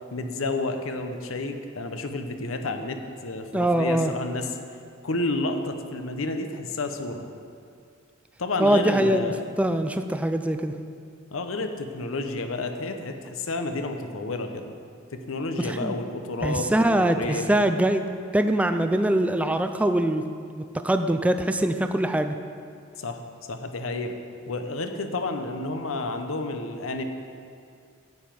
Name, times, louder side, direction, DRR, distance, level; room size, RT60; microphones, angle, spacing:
voice 1, 0.1-4.5 5.0-7.2 8.4-9.4 11.3-14.7 15.1-17.6 23.0-23.2 23.5-24.1 24.5-27.0, left 2 dB, 75° left, 6 dB, 0.8 m, -30 dB
voice 2, 3.5-4.1 8.6-9.3 9.6-10.8 15.6-16.0 16.4-18.0 18.3-20.2 20.6-22.4, right 1 dB, 5° right, 7 dB, 0.3 m, -23 dB
9.5 x 7.1 x 5.9 m, 2.3 s
head